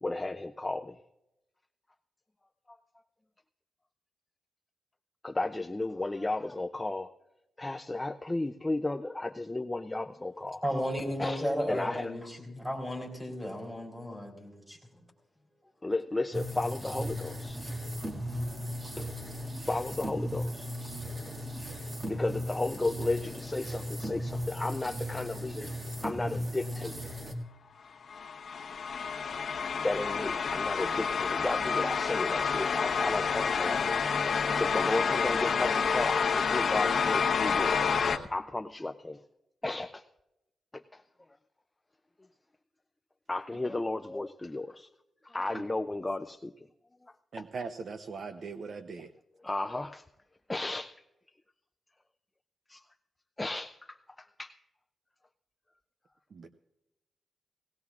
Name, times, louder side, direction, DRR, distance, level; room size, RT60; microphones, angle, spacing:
voice 1, 0.0-1.0 5.2-7.1 7.6-10.6 11.2-12.1 15.8-17.6 19.0-19.1 19.7-20.7 22.0-25.7 26.0-27.1 29.8-34.0 34.6-38.0 38.3-39.2 39.6-40.0 43.3-44.9 45.2-46.5 47.4-47.5 49.4-50.0 50.5-50.9 52.7-52.8 53.4-54.0 54.4-54.5, left 2 dB, 15° left, 7 dB, 0.4 m, -33 dB
voice 2, 10.6-14.8, equal, 10° right, 0 dB, 4.0 m, -34 dB
sound 1, 16.3-27.3, equal, 25° right, 2.0 m, -37 dB
sound 2, 28.1-38.2, left 6 dB, 65° left, 1.0 m, -29 dB
voice 3, 47.3-49.1 56.3-56.5, right 4 dB, 50° right, 9 dB, 0.6 m, -40 dB
18.5 x 18.0 x 2.4 m, 0.92 s
wide cardioid pair, 135°, 0 cm